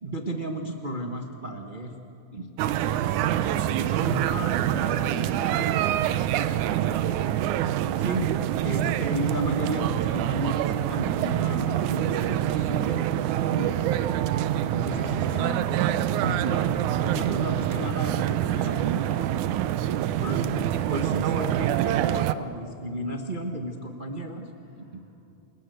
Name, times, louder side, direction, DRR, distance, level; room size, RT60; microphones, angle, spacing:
voice 1, 0.0-1.9 2.3-2.5 4.0-4.5 5.0-5.2 8.0-8.2 8.6-13.1 13.5-13.7 14.7-15.6 16.2-16.7 17.0-19.5 20.2-24.5 24.9-25.1, equal, 60° right, 3 dB, 0.5 m, -33 dB
voice 2, 2.6-4.3 4.7-6.4 6.7-7.6 10.7-11.2 13.6-14.5 14.8-15.7 24.7-25.0, equal, 20° right, -4 dB, 7.0 m, -44 dB
sound 1, 2.6-22.3, right 12 dB, 85° right, 2.2 m, -26 dB
29.5 x 20.5 x 7.9 m, 2.8 s
omnidirectional pair, 3.4 m